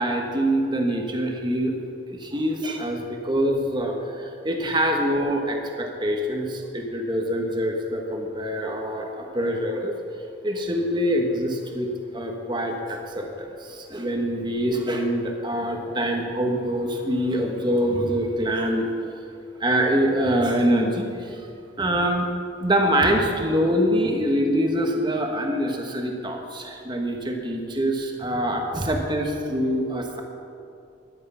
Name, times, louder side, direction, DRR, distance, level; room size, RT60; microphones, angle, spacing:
voice 1, 0.0-1.8 2.1-9.9 10.4-18.9 19.6-21.4 21.8-22.3 22.6-30.2, equal, 20° right, 2 dB, 1.4 m, -25 dB
14.0 x 11.5 x 5.7 m, 2.5 s
head